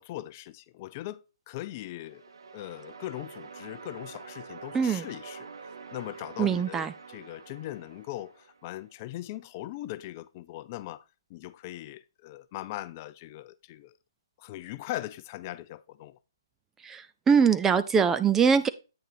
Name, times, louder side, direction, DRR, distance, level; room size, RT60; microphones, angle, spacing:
voice 1, 0.0-2.2 2.5-5.5 5.9-11.0 11.3-14.0 14.4-16.2, left 15 dB, 35° left, 0.5 m, -40 dB
sound 1, 2.0-9.0, right 5 dB, 80° right, 1.1 m, -46 dB
voice 2, 4.7-5.1 6.4-6.9 16.8-18.7, right 6 dB, 10° right, 0.4 m, -23 dB
8.9 x 6.6 x 2.7 m
hypercardioid pair, 140°, 2 cm